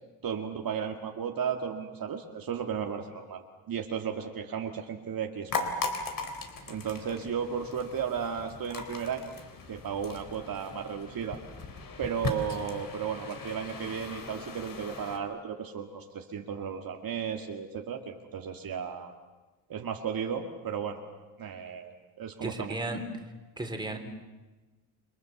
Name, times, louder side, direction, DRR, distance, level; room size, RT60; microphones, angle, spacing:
voice 1, 0.2-5.8 6.7-9.3 9.7-11.4 12.0-19.1 19.7-21.0 21.4-22.7, right 7 dB, 50° right, 3 dB, 2.1 m, -34 dB
sound 1, 5.5-15.2, left 4 dB, 45° left, 3.7 m, -38 dB
voice 2, 22.4-23.0 23.6-24.0, right 2 dB, 10° right, 4 dB, 3.5 m, -34 dB
29.5 x 22.5 x 7.1 m, 1.2 s
cardioid pair, 105°, 44 cm